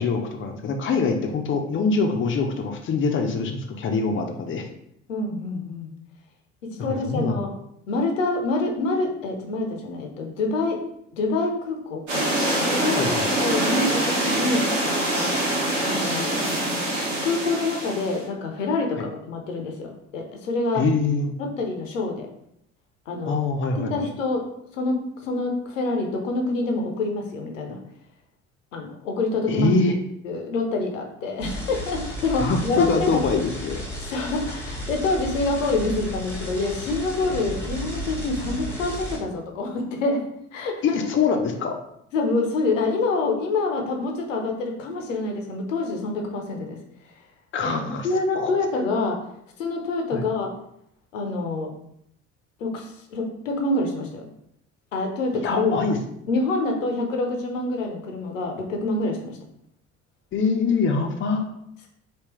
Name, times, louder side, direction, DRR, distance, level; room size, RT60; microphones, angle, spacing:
voice 1, 0.0-4.7 6.9-7.4 12.9-13.3 19.0-19.1 20.7-21.3 23.3-24.1 29.5-29.9 32.4-33.8 40.8-41.8 47.5-48.1 48.4-48.5 50.1-50.2 55.4-56.0 60.3-61.5, left 4 dB, 35° left, 4 dB, 0.5 m, -24 dB
voice 2, 5.1-5.9 6.6-7.5 7.9-10.8 11.1-12.2 12.7-14.7 15.8-16.3 17.2-20.8 21.4-22.3 23.1-23.3 23.9-24.4 24.7-27.8 28.7-29.7 30.2-33.2 34.1-40.2 40.5-41.0 42.1-46.8 47.6-49.2 49.6-50.5 51.1-51.7 52.6-54.2 54.9-55.9 56.3-59.4, left 3 dB, 80° left, 2 dB, 0.7 m, -26 dB
sound 1, 12.1-18.2, right 1 dB, 70° right, 1.2 m, -24 dB
sound 2, 31.4-39.2, equal, 5° left, 1.0 m, -33 dB
3.4 x 2.7 x 3.0 m, 0.74 s
figure-of-eight pair, 55°, 38 cm